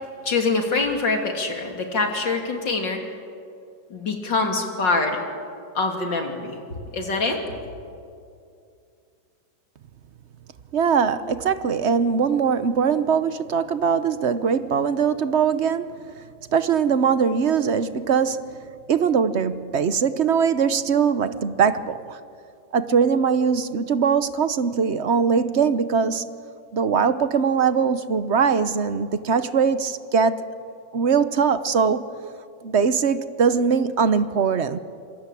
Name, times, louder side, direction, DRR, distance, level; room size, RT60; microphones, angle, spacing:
voice 1, 0.2-3.0 3.9-5.2 5.8-7.4, left 3 dB, 65° left, 3 dB, 3.6 m, -24 dB
voice 2, 10.7-15.9 16.5-18.5 18.9-22.2 22.7-26.4 26.7-30.4 30.9-32.0 32.6-34.8, right 6 dB, 50° right, 12 dB, 0.9 m, -21 dB
27.0 x 24.5 x 8.5 m, 2.4 s
omnidirectional pair, 2.1 m